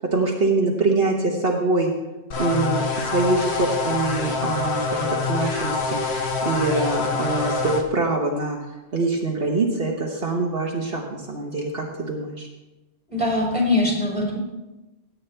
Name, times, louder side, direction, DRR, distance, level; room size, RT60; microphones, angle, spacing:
voice 1, 0.1-1.9 2.4-6.0 6.4-8.6 8.9-12.5, right 3 dB, 60° right, -1 dB, 1.5 m, -24 dB
sound 1, 2.3-7.8, left 4 dB, 70° left, 1.4 m, -25 dB
voice 2, 13.1-14.4, left 2 dB, 10° left, -3 dB, 4.4 m, -22 dB
17.0 x 8.7 x 3.4 m, 1.0 s
omnidirectional pair, 1.2 m